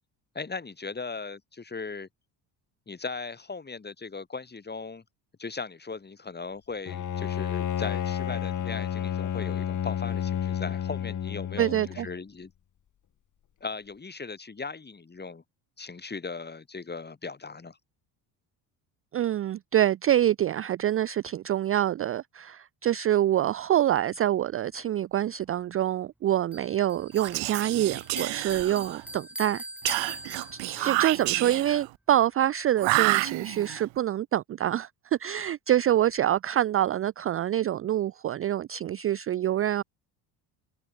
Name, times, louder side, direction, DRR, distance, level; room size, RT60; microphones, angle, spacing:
voice 1, 0.3-2.1 2.9-5.0 5.4-12.5 13.6-15.4 15.8-17.8 30.7-31.0, left 4 dB, 20° left, 3.2 m, -38 dB
Bowed string instrument, 6.9-12.2, left 10 dB, 40° left, 1.4 m, -31 dB
voice 2, 11.6-12.1 19.1-29.6 30.5-39.8, right 12 dB, 30° right, 0.4 m, -26 dB
Bell, 26.5-31.0, right 1 dB, 5° right, 2.7 m, -41 dB
Whispering, 27.1-29.1 29.9-31.9 32.8-33.8, right 23 dB, 80° right, 1.3 m, -29 dB
cardioid pair, 95°, 45 cm